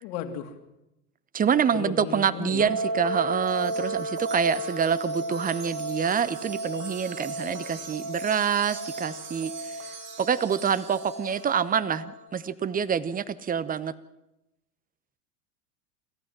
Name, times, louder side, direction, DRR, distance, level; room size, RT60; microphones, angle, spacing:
voice 1, 0.0-0.5 1.7-2.7, left 9 dB, 65° left, 5 dB, 3.1 m, -34 dB
voice 2, 1.3-9.5 10.2-13.9, right 7 dB, 20° right, 16 dB, 0.9 m, -26 dB
sound 1, 2.6-12.3, right 1 dB, 50° right, 3.8 m, -34 dB
Wind chime, 3.4-11.6, right 6 dB, 85° right, 5.8 m, -44 dB
28.0 x 14.5 x 7.5 m, 0.90 s
hypercardioid pair, 95°, 46 cm